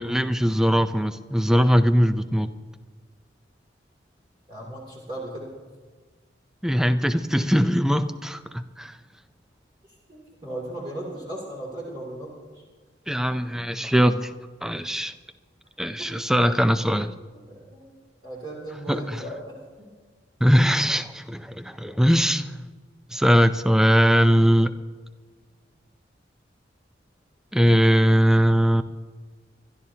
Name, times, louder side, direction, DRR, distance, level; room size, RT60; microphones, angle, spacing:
voice 1, 0.0-2.5 6.6-9.0 13.1-14.3 14.6-15.1 15.8-17.1 18.9-19.2 20.4-22.6 23.1-24.7 27.5-28.8, equal, 5° right, 10 dB, 0.5 m, -20 dB
voice 2, 4.5-5.5 9.8-12.6 17.7-17.9 18.2-19.9, right 1 dB, 25° right, -5 dB, 2.7 m, -37 dB
26.0 x 12.5 x 2.8 m, 1.4 s
head